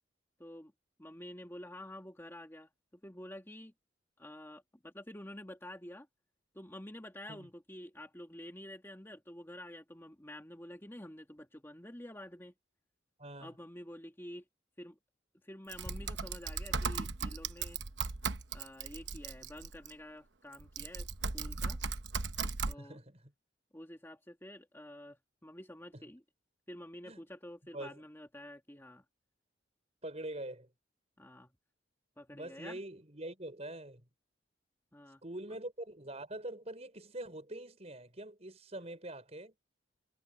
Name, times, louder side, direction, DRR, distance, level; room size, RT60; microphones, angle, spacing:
voice 1, 0.4-0.7 1.0-3.7 4.2-6.1 6.5-12.5 13.4-14.4 14.8-15.0 15.4-17.8 18.5-21.1 21.3-21.8 22.6-23.0 23.7-26.2 26.7-29.0 31.2-31.5 32.2-32.8 34.9-35.2, left 1 dB, 15° left, 2.1 m, -49 dB
voice 2, 13.2-13.6 22.8-23.3 25.9-26.1 27.0-27.2 27.7-28.0 30.0-30.7 32.3-34.0 35.2-39.5, right 1 dB, 35° right, 5.8 m, -44 dB
Typing, 15.7-19.9 20.5-22.8, right 5 dB, 65° right, 1.0 m, -37 dB
sound 1, 15.9-19.8 20.0-20.2, equal, 30° left, 4.9 m, -57 dB
head